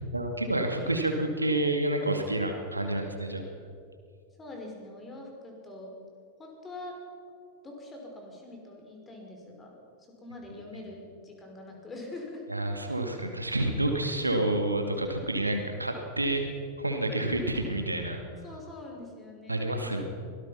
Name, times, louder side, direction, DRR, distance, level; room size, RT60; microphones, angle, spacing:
voice 1, 0.1-3.5 12.5-16.5 16.8-18.2 19.5-20.0, right 1 dB, 85° right, 4 dB, 2.3 m, -29 dB
voice 2, 4.4-5.9 6.4-7.0 7.6-9.8 10.2-12.4 18.4-20.0, left 2 dB, 20° left, 1 dB, 5.5 m, -44 dB
24.0 x 18.5 x 5.9 m, 2.3 s
figure-of-eight pair, 90°, 0 cm